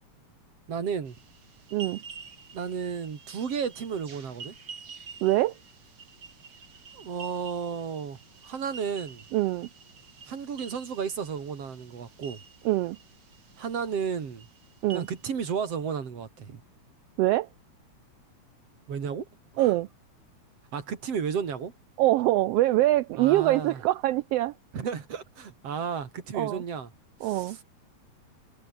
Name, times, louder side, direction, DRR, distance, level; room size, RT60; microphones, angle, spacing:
voice 1, 0.7-1.2 2.5-4.6 6.9-8.2 8.4-9.2 10.3-12.4 13.6-14.5 14.9-16.6 18.9-19.3 19.5-19.7 20.7-21.7 23.2-23.8 24.7-26.9 27.2-27.6, right 6 dB, 55° right, 3.8 m, -33 dB
sound 1, 1.1-15.8, right 5 dB, 40° right, 2.6 m, -49 dB
voice 2, 5.2-5.5 9.3-9.7 12.6-13.0 14.8-15.1 17.2-17.5 19.6-19.9 22.0-24.5 26.3-26.6 27.2-27.6, right 16 dB, 80° right, 1.4 m, -24 dB
omnidirectional pair, 3.3 m